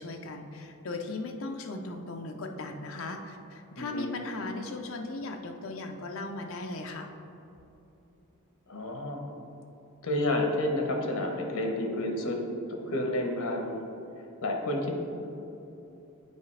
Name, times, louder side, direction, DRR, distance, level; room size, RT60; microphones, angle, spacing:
voice 1, 0.0-7.1, left 2 dB, 65° left, 3 dB, 0.5 m, -37 dB
voice 2, 3.8-4.1 8.7-9.2 10.0-12.4 12.7-13.9 14.4-14.9, left 1 dB, 80° left, 2 dB, 0.9 m, -30 dB
8.1 x 4.7 x 3.3 m, 2.9 s
head